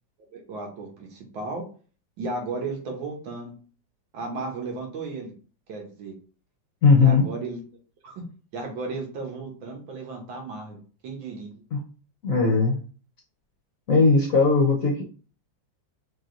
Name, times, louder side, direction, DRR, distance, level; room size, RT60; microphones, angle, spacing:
voice 1, 0.3-1.7 2.2-3.5 4.1-5.3 5.7-6.2 7.0-7.6 8.0-8.3 8.5-11.6, right 3 dB, 80° right, 2 dB, 2.0 m, -34 dB
voice 2, 6.8-7.3 11.7-11.8 12.2-12.8 13.9-15.0, left 4 dB, 50° left, 0 dB, 1.2 m, -18 dB
4.8 x 2.9 x 3.9 m, 0.38 s
omnidirectional pair, 2.1 m